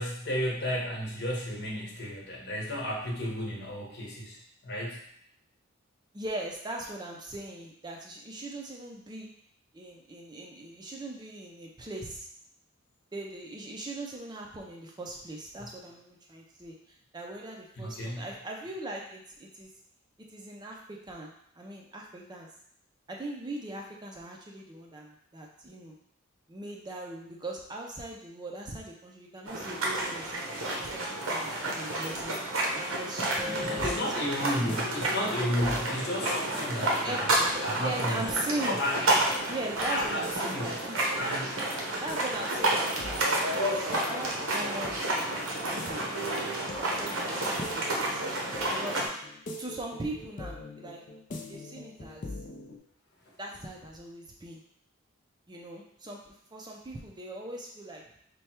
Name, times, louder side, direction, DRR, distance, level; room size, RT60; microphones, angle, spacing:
voice 1, 0.0-5.0 15.6-15.7 17.8-18.2 33.4-38.2 38.6-39.0 39.9-40.8 41.2-41.5, equal, 55° left, -2 dB, 0.9 m, -33 dB
voice 2, 6.1-9.3 9.7-12.3 13.1-19.7 20.3-22.5 23.1-26.0 26.5-30.4 30.8-32.4 32.8-34.3 34.6-34.8 37.0-37.2 37.8-38.8 39.5-41.2 42.0-46.1 46.7-48.2 48.7-49.0 49.6-51.0 51.5-52.3 53.4-54.6 55.5-58.0, right 2 dB, 20° right, -1 dB, 0.4 m, -40 dB
sound 1, 29.5-49.1, right 1 dB, 85° right, 0.9 m, -30 dB
sound 2, 33.8-52.8, left 2 dB, 40° left, 0.4 m, -45 dB
3.3 x 2.2 x 4.3 m, 0.68 s
head